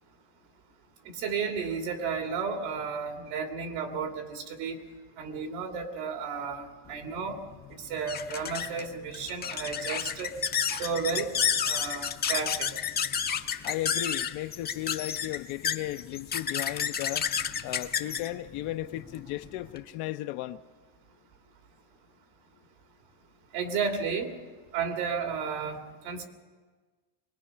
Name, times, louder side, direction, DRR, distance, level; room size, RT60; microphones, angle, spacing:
voice 1, 1.0-4.8 5.2-7.4 7.8-10.4 10.7-11.3 11.6-12.7 23.5-24.3 24.7-26.3, right 6 dB, 85° right, 3.0 m, -33 dB
sound 1, 6.9-19.8, left 7 dB, 20° left, 0.6 m, -31 dB
voice 2, 13.6-17.3 17.6-20.6, left 15 dB, 65° left, 0.7 m, -35 dB
23.5 x 19.5 x 5.6 m
cardioid pair, 150°, 49 cm